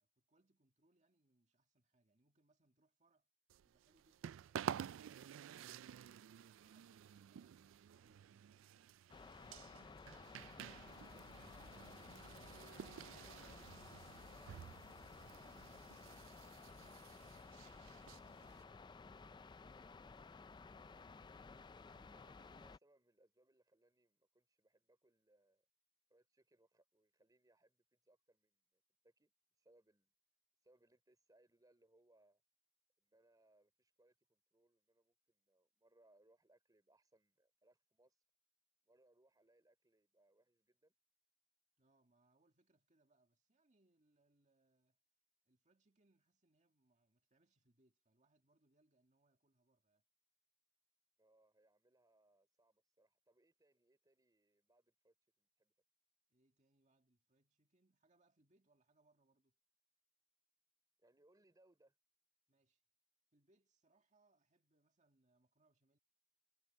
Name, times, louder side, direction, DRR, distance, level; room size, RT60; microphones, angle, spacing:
voice 1, 0.0-3.3 3.6-10.2 41.8-45.0 45.4-50.0 56.3-59.6 62.5-62.8 63.3-66.0, right 2 dB, 40° right, 2.0 m, -79 dB
sound 1, 3.5-18.6, right 9 dB, 85° right, 0.3 m, -51 dB
sound 2, 9.1-22.8, left 4 dB, 25° left, 0.4 m, -56 dB
voice 2, 14.4-14.8 22.0-25.7 26.1-29.3 29.6-30.1 30.6-32.4 33.0-38.2 38.8-41.0 51.2-55.7 61.0-61.9, right 1 dB, 20° right, 3.1 m, -74 dB
head